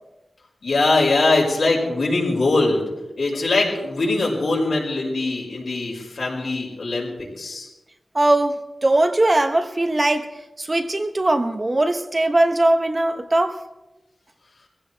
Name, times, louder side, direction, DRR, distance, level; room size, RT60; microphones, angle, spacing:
voice 1, 0.6-2.8 3.2-7.1 7.4-7.7, left 2 dB, 75° left, 5.6 m, -21 dB
voice 2, 8.1-13.6, right 1 dB, 30° right, 1.0 m, -20 dB
22.5 x 15.5 x 3.4 m
wide cardioid pair, 75°, 0 cm